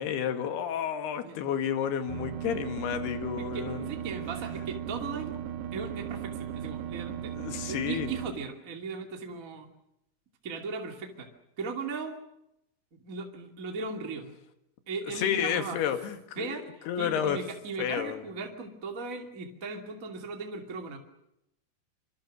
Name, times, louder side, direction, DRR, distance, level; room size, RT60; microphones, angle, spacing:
voice 1, 0.0-3.8 7.4-8.1 15.2-16.6 16.9-17.4 17.8-18.2, left 9 dB, 60° left, 7 dB, 3.4 m, -31 dB
sound 1, 2.1-8.3, right 10 dB, 90° right, 4.0 m, -37 dB
voice 2, 3.4-5.4 5.7-7.4 7.6-9.7 10.4-11.3 11.6-12.2 12.9-14.3 14.8-15.8 16.3-21.0, right 4 dB, 35° right, 2 dB, 1.4 m, -37 dB
26.5 x 25.5 x 6.3 m, 0.82 s
omnidirectional pair, 6.0 m